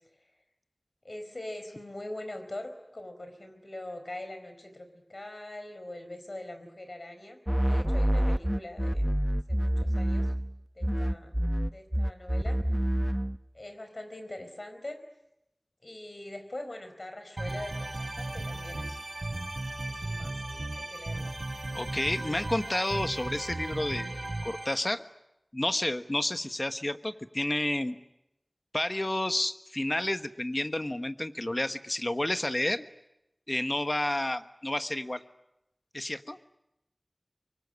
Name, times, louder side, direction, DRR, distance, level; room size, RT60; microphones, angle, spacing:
voice 1, 1.0-7.4 7.7-9.2 9.5-10.3 10.8-11.3 11.7-12.6 13.5-15.0 15.8-19.2 19.9-20.4 20.7-21.8, left 1 dB, 75° left, 8 dB, 4.4 m, -43 dB
sound 1, 7.5-10.5 10.8-13.4, equal, 10° right, 0.9 m, -27 dB
sound 2, 17.4-24.7, right 2 dB, 75° right, 4.1 m, -36 dB
voice 2, 21.7-24.1 24.4-25.0 25.5-28.0 28.7-32.8 33.5-35.2 35.9-36.4, left 1 dB, 40° left, 9 dB, 1.3 m, -30 dB
24.0 x 24.0 x 9.6 m, 0.88 s
wide cardioid pair, 45°, 0 cm